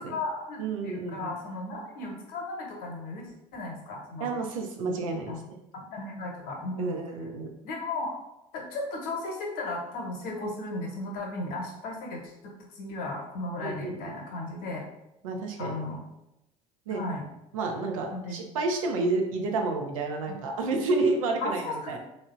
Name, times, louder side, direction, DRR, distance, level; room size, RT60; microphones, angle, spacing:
voice 1, 0.0-4.3 5.3-5.4 5.7-7.0 7.6-8.2 8.5-14.8 15.6-16.0 16.9-17.3 18.1-18.4 20.3-20.4 21.4-22.0, left 2 dB, 60° left, 0 dB, 0.8 m, -35 dB
voice 2, 0.6-1.4 4.2-5.4 6.8-7.5 13.6-14.1 15.2-15.7 16.9-17.0 17.5-22.0, right 3 dB, 85° right, 3 dB, 0.5 m, -30 dB
3.1 x 2.0 x 2.4 m, 0.87 s
hypercardioid pair, 70°, 17 cm